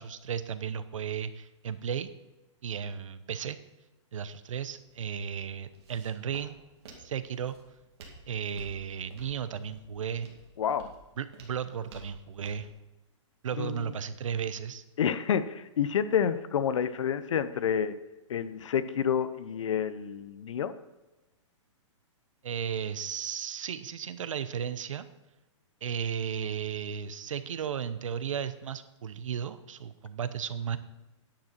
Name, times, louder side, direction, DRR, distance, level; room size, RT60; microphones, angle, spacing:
voice 1, 0.0-2.1 2.6-3.6 4.1-6.6 7.0-7.6 8.3-10.3 11.2-12.7 13.4-14.8 22.4-25.1 25.8-30.8, right 8 dB, 85° right, 14 dB, 0.8 m, -34 dB
Walk footsteps, 4.6-12.7, right 3 dB, 55° right, 2.7 m, -54 dB
voice 2, 10.6-10.9 13.6-13.9 15.0-17.9 18.3-20.7, left 8 dB, 75° left, 13 dB, 0.8 m, -29 dB
10.0 x 9.0 x 4.4 m, 1.1 s
hypercardioid pair, 170°, 16 cm